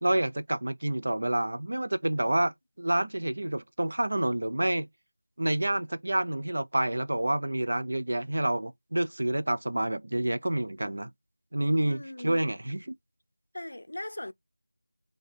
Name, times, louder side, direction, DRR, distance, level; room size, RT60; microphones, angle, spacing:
voice 1, 0.0-4.9 5.4-11.1 11.5-13.0, right 1 dB, 55° right, 0.5 m, -28 dB
voice 2, 11.9-12.4 13.5-14.3, left 1 dB, 65° left, 0.5 m, -39 dB
4.8 x 2.2 x 3.2 m
figure-of-eight pair, 180°, 0 cm